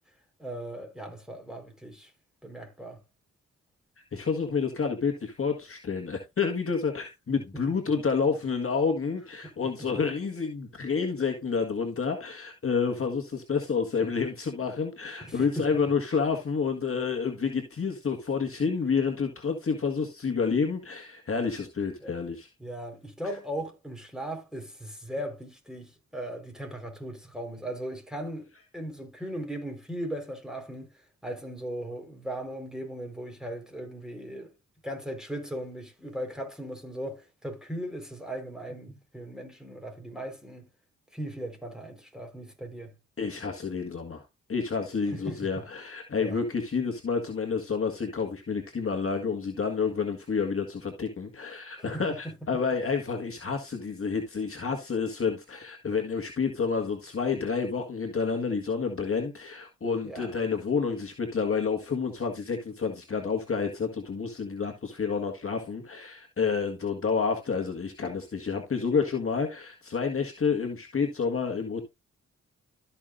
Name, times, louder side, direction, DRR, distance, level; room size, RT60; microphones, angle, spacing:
voice 1, 0.4-2.1 2.4-3.0 7.5-7.6 15.3-15.7 22.0-22.1 22.6-28.5 28.7-30.9 31.2-34.5 34.8-40.7 41.1-42.9 45.1-45.4 46.2-46.4 51.9-52.6 60.0-60.4, right 1 dB, ahead, 4.5 m, -38 dB
voice 2, 4.1-22.5 43.2-44.2 44.5-71.8, left 5 dB, 45° left, 1.7 m, -29 dB
13.0 x 5.8 x 2.6 m
supercardioid pair, 45°, 32 cm